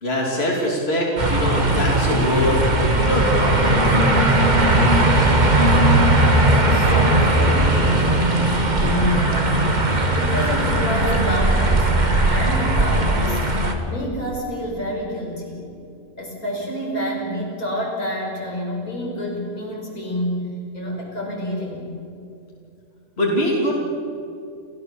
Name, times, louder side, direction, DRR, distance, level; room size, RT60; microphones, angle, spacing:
voice 1, 0.0-4.3 23.2-23.8, equal, 45° left, -2 dB, 3.3 m, -23 dB
sound 1, 1.2-13.8, right 1 dB, 30° right, 1.9 m, -18 dB
voice 2, 6.4-7.7 8.8-13.5 13.8-15.7 16.2-21.8, equal, 85° left, -3 dB, 6.4 m, -28 dB
29.0 x 15.5 x 7.1 m, 2.6 s
omnidirectional pair, 1.5 m